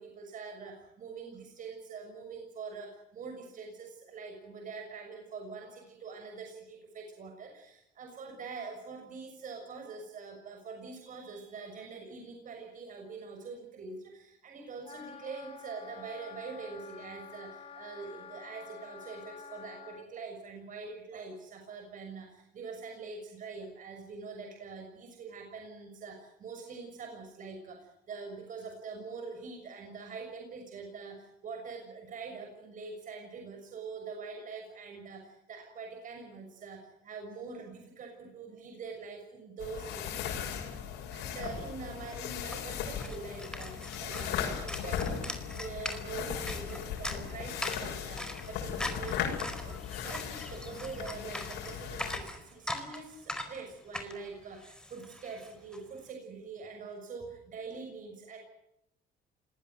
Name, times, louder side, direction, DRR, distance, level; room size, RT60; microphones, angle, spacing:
voice 1, 0.0-40.4 40.8-58.4, right 4 dB, 50° right, 3 dB, 6.4 m, -44 dB
Wind instrument woodwind instrument, 14.8-20.0, left 6 dB, 35° left, 2.0 m, -49 dB
sound 1, 39.6-52.2, left 8 dB, 90° left, 6.5 m, -37 dB
sound 2, 41.9-55.8, left 1 dB, 5° left, 4.5 m, -41 dB
27.0 x 21.0 x 8.0 m, 0.83 s
cardioid pair, 110°, 17 cm